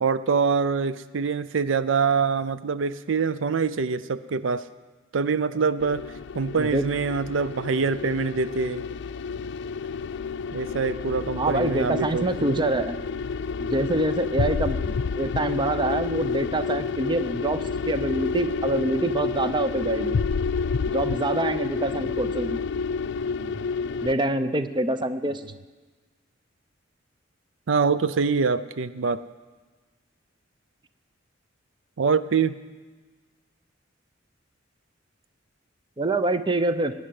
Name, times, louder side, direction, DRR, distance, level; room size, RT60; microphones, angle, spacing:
voice 1, 0.0-4.6 5.1-6.1 6.3-8.8 10.5-12.6 23.4-23.6 27.7-29.2 32.0-32.6, right 5 dB, 75° right, 15 dB, 0.5 m, -25 dB
sound 1, 5.8-24.1, left 5 dB, 65° left, 0.4 m, -29 dB
voice 2, 11.4-13.0 13.6-20.2 20.9-22.6 24.0-25.4 36.0-36.9, right 2 dB, 25° right, 11 dB, 0.7 m, -26 dB
19.5 x 9.5 x 7.6 m, 1.3 s
head